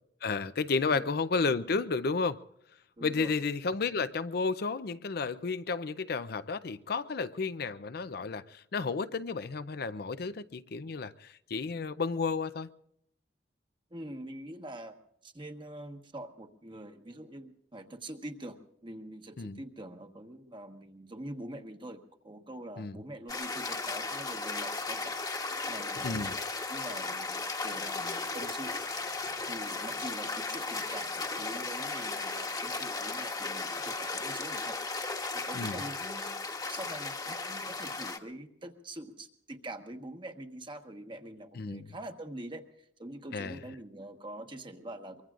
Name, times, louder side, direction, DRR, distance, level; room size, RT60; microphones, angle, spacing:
voice 1, 0.2-2.4 3.0-12.7 19.4-19.6 22.8-23.0 26.0-26.4 35.5-35.8 41.5-41.9 43.3-43.6, left 4 dB, 60° left, 0.5 m, -32 dB
voice 2, 3.0-3.3 13.9-15.0 15.2-25.2 25.7-26.3 26.7-28.9 29.5-34.8 35.3-42.6 43.0-45.2, right 1 dB, 30° right, 1.3 m, -44 dB
sound 1, 23.3-38.2, left 3 dB, 20° left, 1.3 m, -36 dB
24.0 x 23.0 x 2.5 m
head